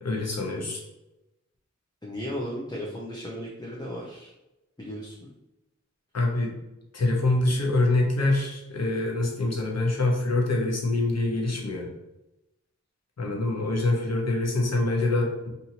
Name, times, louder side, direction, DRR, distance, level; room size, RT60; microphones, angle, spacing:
voice 1, 0.0-0.8 6.1-6.5 6.9-11.9 13.2-15.5, left 2 dB, 60° left, -1 dB, 0.8 m, -25 dB
voice 2, 2.0-4.3 4.8-5.3, equal, 15° left, -4 dB, 0.6 m, -35 dB
2.6 x 2.6 x 2.8 m, 0.97 s
wide cardioid pair, 45°, 30 cm